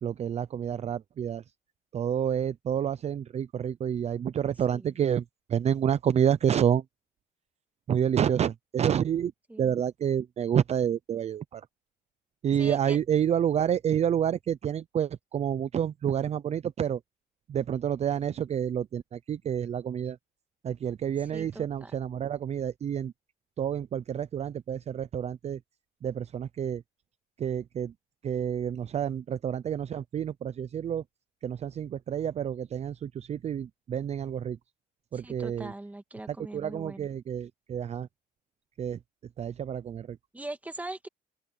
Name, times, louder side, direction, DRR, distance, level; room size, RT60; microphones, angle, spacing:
voice 1, 0.0-1.4 1.9-6.8 7.9-9.3 9.6-11.7 12.4-17.0 17.5-20.2 20.6-23.1 23.6-25.6 26.0-26.8 27.4-27.9 28.2-31.0 31.4-34.6 35.1-35.7 36.3-38.1 38.8-39.0 39.4-40.2, right 9 dB, 40° right, 0.6 m, -29 dB
voice 2, 12.6-13.0 21.3-21.9 35.1-37.1 40.3-41.1, right 2 dB, 10° right, 2.0 m, -41 dB
open air
cardioid pair, 110°, 17 cm